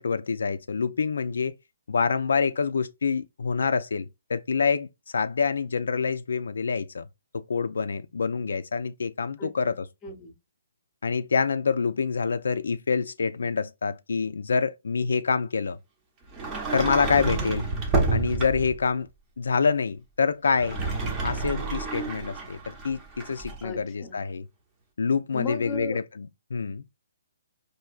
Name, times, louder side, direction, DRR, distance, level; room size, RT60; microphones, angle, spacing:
voice 1, 0.0-1.5 1.9-4.9 5.1-7.1 7.3-9.8 11.0-15.8 16.7-17.7 18.1-19.1 19.4-20.8 21.2-24.5 25.0-26.8, left 5 dB, 80° left, 0.3 m, -26 dB
voice 2, 9.4-10.3 17.1-17.6 23.6-24.2 25.3-26.0, left 3 dB, 15° left, 0.7 m, -37 dB
Sliding door, 16.3-18.8 20.5-23.6, right 3 dB, 20° right, 0.7 m, -29 dB
4.3 x 2.6 x 2.3 m
hypercardioid pair, 155°, 0 cm